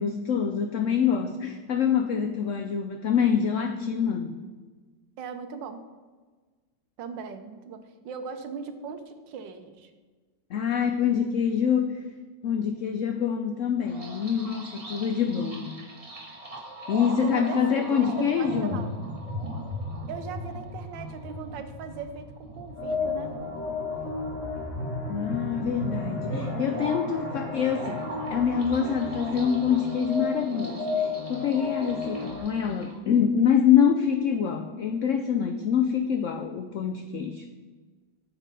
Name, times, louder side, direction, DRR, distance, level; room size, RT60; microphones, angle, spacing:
voice 1, 0.0-4.3 10.5-12.0 12.4-15.8 16.9-18.8 25.1-37.4, left 7 dB, 85° left, 7 dB, 0.6 m, -25 dB
voice 2, 5.2-5.8 7.0-9.9 17.1-18.9 20.1-23.4, right 6 dB, 90° right, 9 dB, 1.5 m, -39 dB
sound 1, 13.9-32.9, equal, 20° right, 1.7 m, -38 dB
sound 2, 22.8-32.4, left 4 dB, 45° left, 1.6 m, -33 dB
8.9 x 7.3 x 4.1 m, 1.4 s
omnidirectional pair, 1.9 m